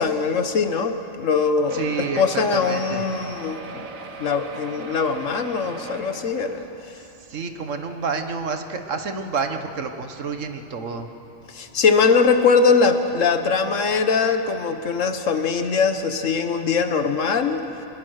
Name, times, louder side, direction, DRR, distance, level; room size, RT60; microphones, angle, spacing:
voice 1, 0.0-3.8 4.2-6.7 11.5-17.6, left 5 dB, 70° left, 8 dB, 1.5 m, -21 dB
voice 2, 1.7-3.0 7.2-11.1, right 5 dB, 70° right, 7 dB, 1.6 m, -29 dB
sound 1, 1.7-7.1 7.8-7.9 8.2-8.3 8.6-8.7, right 3 dB, 90° right, 1.7 m, -38 dB
24.5 x 21.5 x 6.5 m, 3.0 s
omnidirectional pair, 1.4 m